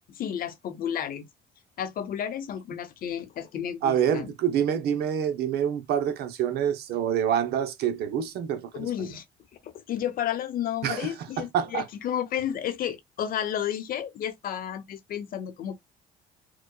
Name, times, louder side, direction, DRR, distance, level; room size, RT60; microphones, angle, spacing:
voice 1, 0.1-1.3 1.8-4.3 8.7-9.2 9.6-15.7, left 10 dB, 60° left, 0.8 m, -32 dB
voice 2, 3.8-9.1 10.8-11.9, right 9 dB, 70° right, 0.8 m, -27 dB
4.7 x 2.2 x 2.2 m
cardioid pair, 110°, 17 cm